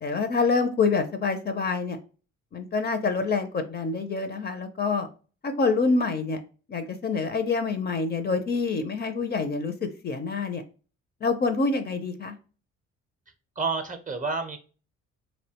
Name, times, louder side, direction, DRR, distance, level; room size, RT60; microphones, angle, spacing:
voice 1, 0.0-2.0 2.5-5.1 5.4-6.4 6.7-10.6 11.2-12.3, left 4 dB, 35° left, 8 dB, 0.4 m, -26 dB
voice 2, 13.6-14.6, right 4 dB, 25° right, 8 dB, 0.5 m, -29 dB
2.6 x 2.1 x 2.8 m, 0.37 s
cardioid pair, 90°, 30 cm